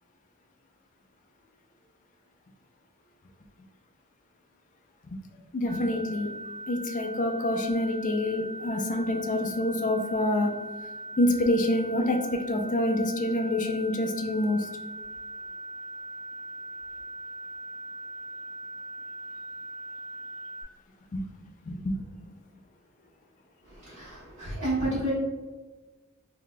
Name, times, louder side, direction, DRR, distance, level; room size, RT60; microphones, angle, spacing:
voice 1, 5.5-6.3 6.7-10.5 11.2-12.2 12.5-14.7 21.1-21.3 21.7-22.0, left 1 dB, 35° left, 3 dB, 0.4 m, -26 dB
sound 1, 5.7-20.6, equal, 30° right, 0.5 m, -40 dB
voice 2, 23.7-25.1, right 1 dB, 55° right, -12 dB, 1.5 m, -31 dB
3.8 x 2.7 x 2.2 m, 1.2 s
head